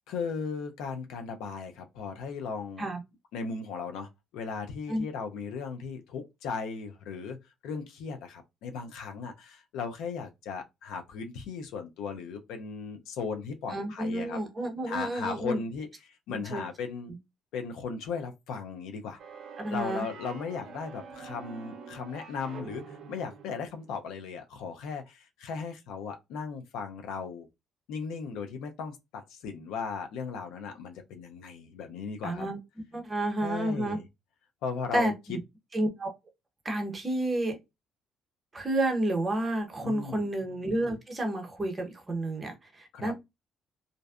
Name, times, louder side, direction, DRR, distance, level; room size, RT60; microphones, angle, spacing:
voice 1, 0.1-2.9 3.3-7.4 7.6-14.4 14.9-17.1 17.5-19.2 19.7-27.5 27.9-32.5 33.4-34.0 34.6-35.1 39.8-40.3 42.9-43.1, left 5 dB, 85° left, 0.5 m, -37 dB
voice 2, 13.7-15.6 16.3-16.6 19.6-20.1 32.2-32.6 32.9-34.0 34.9-35.4 35.7-36.1 36.6-37.6 38.5-43.1, right 1 dB, 25° right, 0.8 m, -30 dB
sound 1, 19.2-23.9, right 5 dB, 60° right, 0.5 m, -46 dB
2.5 x 2.1 x 2.4 m
cardioid pair, 100°, 0 cm